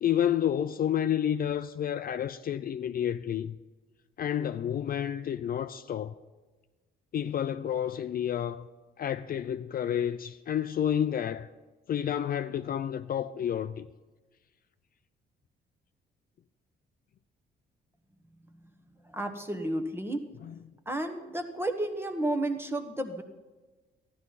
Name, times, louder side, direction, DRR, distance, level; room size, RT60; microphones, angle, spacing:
voice 1, 0.0-3.6 4.2-6.1 7.1-8.7 9.0-11.5 11.9-13.9 20.4-20.5, left 10 dB, 50° left, 0.4 m, -30 dB
voice 2, 19.1-20.2 20.9-23.2, right 1 dB, 10° right, 1.2 m, -32 dB
13.5 x 11.0 x 4.1 m
cardioid pair, 90°, 20 cm